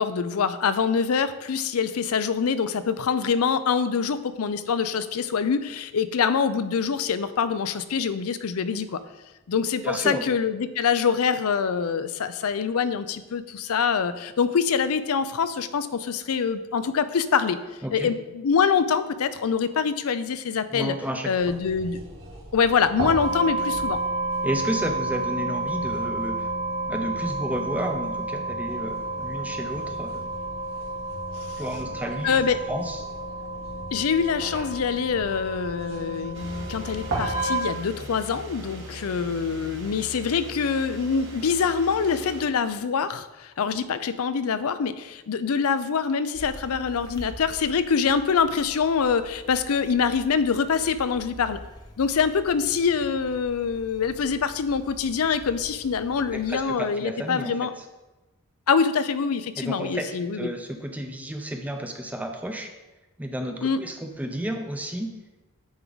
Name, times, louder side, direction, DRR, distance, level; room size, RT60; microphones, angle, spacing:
voice 1, 0.0-9.0 9.5-17.6 17.9-20.9 21.3-22.0 22.5-24.0 31.4-31.6 32.2-32.6 33.9-51.6 52.0-57.7 58.7-60.5 63.6-63.8, left 6 dB, 90° left, 13 dB, 0.5 m, -25 dB
voice 2, 9.8-10.3 17.8-18.1 20.7-21.6 24.4-26.5 26.9-30.3 31.6-32.4 32.7-33.1 56.3-57.8 59.6-62.7 63.2-65.2, right 1 dB, 5° right, 4 dB, 0.6 m, -32 dB
sound 1, 21.4-37.6, right 2 dB, 75° right, 2.3 m, -31 dB
sound 2, 36.3-42.4, equal, 60° right, 1.6 m, -40 dB
sound 3, 46.3-56.6, equal, 20° left, 0.9 m, -46 dB
9.4 x 4.6 x 3.9 m, 1.1 s
head